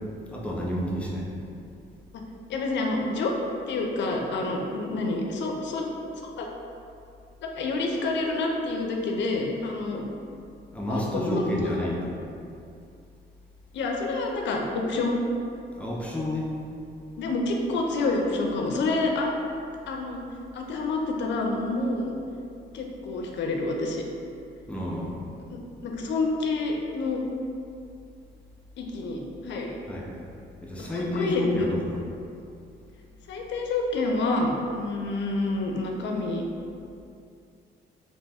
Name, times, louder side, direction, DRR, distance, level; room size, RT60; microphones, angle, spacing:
voice 1, 0.3-1.3 10.7-12.1 15.7-16.5 24.7-25.2 29.9-30.2 30.6-32.0, left 1 dB, 5° left, -4 dB, 0.5 m, -30 dB
voice 2, 2.5-3.3 3.7-5.8 6.4-6.5 7.4-10.0 10.9-11.8 13.7-15.1 17.2-19.3 19.9-20.2 20.5-22.1 22.7-24.0 25.5-27.2 28.8-29.8 30.9-31.7 33.3-36.4, left 2 dB, 65° left, 1 dB, 0.5 m, -28 dB
2.7 x 2.1 x 3.4 m, 2.5 s
cardioid pair, 90°, 20 cm